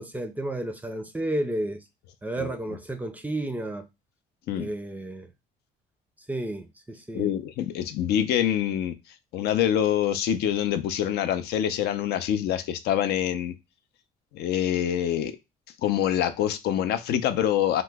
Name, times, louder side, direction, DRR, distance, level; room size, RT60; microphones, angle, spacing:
voice 1, 0.0-1.8 2.2-3.9 4.5-5.3 6.3-7.3, right 1 dB, 10° right, 0.4 m, -32 dB
voice 2, 7.1-8.9 9.3-13.5 14.3-15.3 15.8-17.8, left 10 dB, 75° left, 0.5 m, -25 dB
2.9 x 2.0 x 3.3 m
cardioid pair, 110°, 17 cm